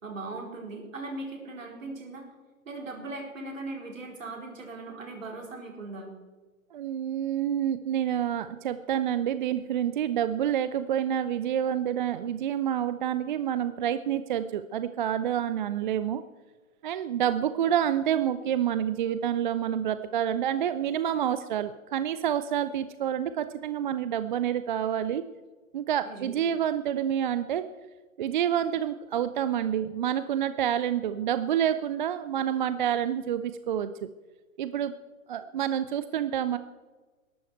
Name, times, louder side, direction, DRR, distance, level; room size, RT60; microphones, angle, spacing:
voice 1, 0.0-2.3 2.6-6.1 26.0-26.4, right 2 dB, 65° right, 1 dB, 4.5 m, -39 dB
voice 2, 6.7-16.2 16.8-25.2 25.7-27.6 28.2-34.1 34.6-34.9 35.3-36.6, right 10 dB, 35° right, 12 dB, 0.5 m, -28 dB
21.0 x 12.0 x 4.5 m, 1.3 s
figure-of-eight pair, 115°, 41 cm